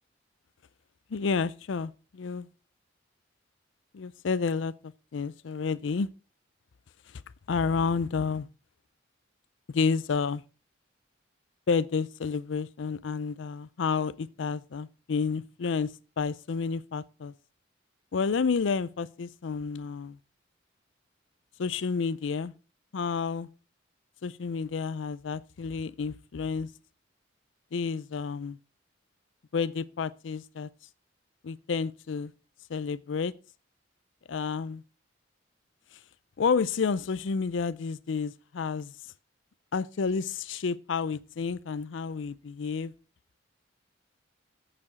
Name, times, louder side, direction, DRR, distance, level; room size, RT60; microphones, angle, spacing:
voice 1, 1.1-2.5 3.9-6.1 7.5-8.5 9.7-10.4 11.7-17.3 18.1-20.2 21.6-22.5 22.9-23.5 24.2-26.7 27.7-28.6 29.5-30.7 31.4-32.3 32.7-33.3 34.3-34.8 36.4-38.9 39.7-42.9, left 5 dB, 70° left, 0.5 m, -30 dB
8.6 x 6.9 x 5.2 m
head